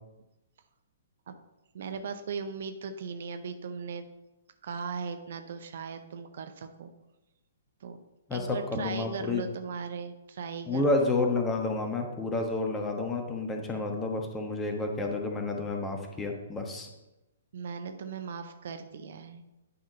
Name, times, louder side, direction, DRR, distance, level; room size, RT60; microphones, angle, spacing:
voice 1, 1.7-4.1 4.6-6.9 7.8-8.0 8.3-10.8 17.5-19.5, right 5 dB, 55° right, 7 dB, 0.6 m, -38 dB
voice 2, 8.3-9.4 10.6-16.9, left 3 dB, 15° left, 3 dB, 1.2 m, -30 dB
10.0 x 3.8 x 5.5 m, 0.98 s
figure-of-eight pair, 120°, 0 cm